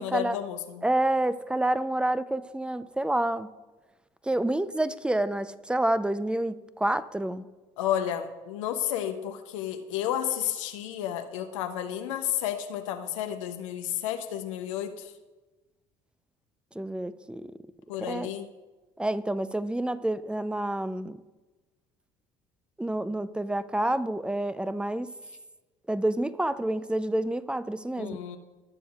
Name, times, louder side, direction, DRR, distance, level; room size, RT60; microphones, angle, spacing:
voice 1, 0.0-0.8 7.8-15.1 17.9-18.5 28.0-28.4, left 10 dB, 85° left, 0.6 m, -31 dB
voice 2, 0.8-3.5 4.2-7.4 16.8-17.5 18.1-18.3 19.0-21.2 22.8-25.1 25.9-28.2, right 1 dB, 5° right, 0.5 m, -28 dB
18.5 x 7.0 x 2.4 m
hypercardioid pair, 60°, 16 cm